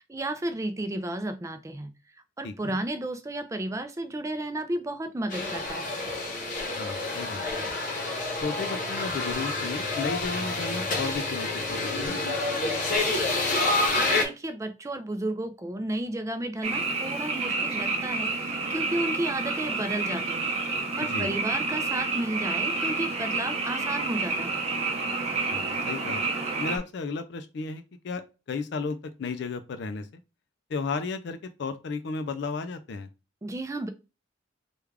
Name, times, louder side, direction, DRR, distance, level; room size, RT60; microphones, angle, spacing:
voice 1, 0.0-1.9 2.4-5.9 14.0-20.5 21.0-24.6 33.4-33.9, right 1 dB, 15° right, 0.4 m, -33 dB
voice 2, 2.4-2.8 6.7-7.4 8.4-12.2 21.1-21.3 25.5-28.2 28.5-30.1 30.7-33.1, left 4 dB, 65° left, 0.4 m, -34 dB
sound 1, 5.3-14.2, left 2 dB, 45° left, 0.9 m, -28 dB
Frog, 16.6-26.8, right 3 dB, 35° right, 0.8 m, -29 dB
3.4 x 2.3 x 3.2 m
head